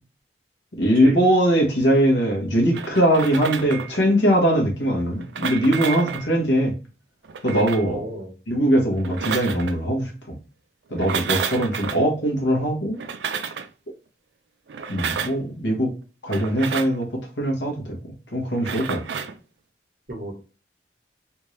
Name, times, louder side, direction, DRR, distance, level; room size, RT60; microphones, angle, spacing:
voice 1, 0.8-6.7 7.4-8.0 8.5-10.1 10.9-13.0 14.9-15.9 16.2-17.1 17.4-18.0 18.3-19.0, equal, 90° left, 1.3 m, -21 dB
sound 1, 2.7-4.0 5.1-6.3 7.2-7.9 8.9-9.8 10.9-12.0 12.9-13.7 14.7-15.4 16.3-17.0 18.5-19.4, right 6 dB, 75° right, 0.4 m, -30 dB
voice 2, 7.8-8.3 20.1-20.3, right 1 dB, 50° right, 1.2 m, -32 dB
3.5 x 2.7 x 3.2 m
head